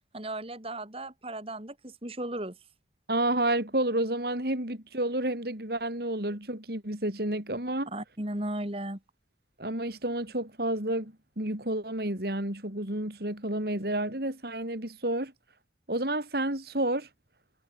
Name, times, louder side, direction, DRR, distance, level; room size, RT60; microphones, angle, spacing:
voice 1, 0.1-2.6 7.9-9.0, right 1 dB, 30° right, 2.9 m, -36 dB
voice 2, 3.1-7.9 9.6-15.3 15.9-17.1, right 1 dB, 55° right, 4.1 m, -30 dB
head